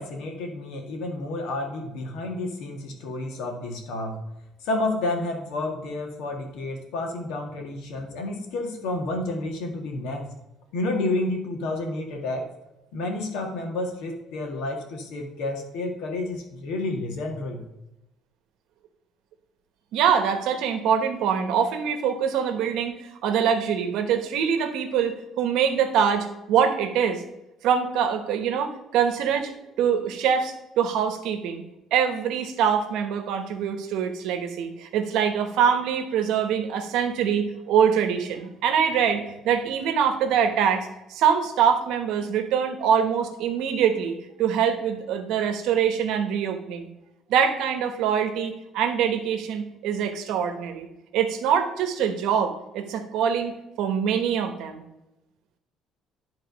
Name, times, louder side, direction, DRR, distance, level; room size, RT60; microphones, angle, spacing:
voice 1, 0.0-4.2 4.6-10.3 10.7-12.4 12.9-17.6, left 2 dB, 80° left, 2 dB, 1.7 m, -30 dB
voice 2, 19.9-22.9 23.2-27.2 27.6-29.5 29.8-31.6 31.9-46.9 47.3-50.9 51.1-54.8, right 7 dB, 70° right, 7 dB, 1.1 m, -24 dB
11.0 x 3.8 x 5.1 m, 0.92 s
cardioid pair, 175°, 0 cm